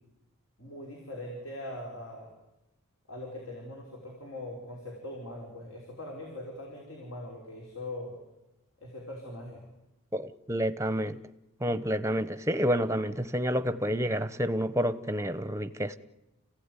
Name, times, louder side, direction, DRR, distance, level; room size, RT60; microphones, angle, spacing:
voice 1, 0.6-2.3 3.1-8.2 8.8-9.6, left 1 dB, 65° left, 5.8 m, -41 dB
voice 2, 10.1-11.2 11.6-16.0, equal, 15° right, 0.9 m, -29 dB
30.0 x 16.0 x 9.9 m
head